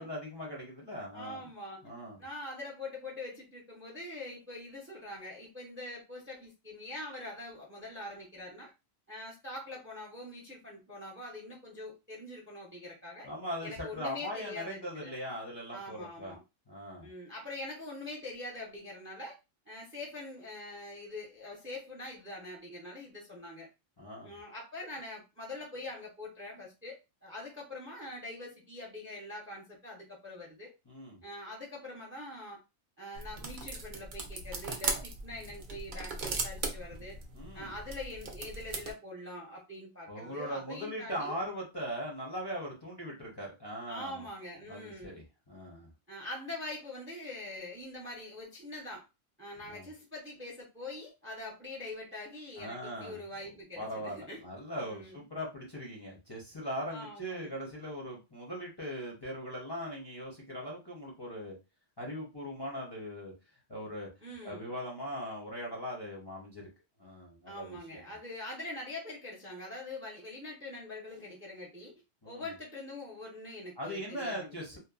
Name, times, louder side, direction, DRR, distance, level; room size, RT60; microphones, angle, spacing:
voice 1, 0.0-1.4 1.8-2.2 13.2-16.3 16.7-17.1 24.0-24.4 30.9-31.2 37.3-37.7 40.1-44.2 44.7-45.9 49.7-49.9 52.6-61.6 62.0-63.3 63.7-64.1 64.4-66.7 67.0-68.0 72.2-72.5 73.8-74.8, equal, 25° left, 0.6 m, -40 dB
voice 2, 1.1-1.8 2.2-8.7 9.1-13.3 13.6-15.2 15.7-16.4 17.0-19.4 19.7-23.7 24.2-30.7 31.2-32.6 33.0-37.2 37.5-41.4 43.9-45.2 46.1-49.0 49.4-54.4 54.8-55.2 56.9-57.5 64.2-64.7 67.5-71.9 72.2-74.6, left 2 dB, 15° right, 0.5 m, -44 dB
sound 1, 33.1-38.9, right 3 dB, 55° right, 0.6 m, -38 dB
2.8 x 2.2 x 2.3 m
omnidirectional pair, 1.2 m